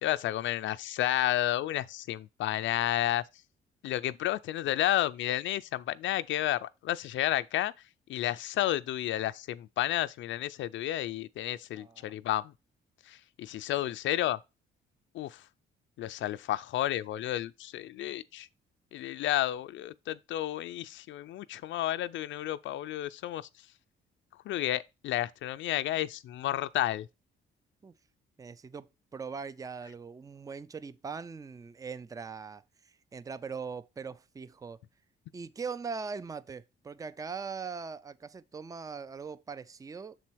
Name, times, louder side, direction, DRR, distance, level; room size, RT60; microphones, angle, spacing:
voice 1, 0.0-3.2 3.8-7.7 8.1-12.4 13.1-14.4 15.1-15.4 16.0-18.5 18.9-23.5 24.5-27.1, left 13 dB, 70° left, 0.4 m, -31 dB
voice 2, 11.7-12.2 27.8-27.9 28.4-34.8 35.3-40.2, right 5 dB, 15° right, 0.4 m, -41 dB
6.7 x 4.2 x 4.5 m
cardioid pair, 90°, 20 cm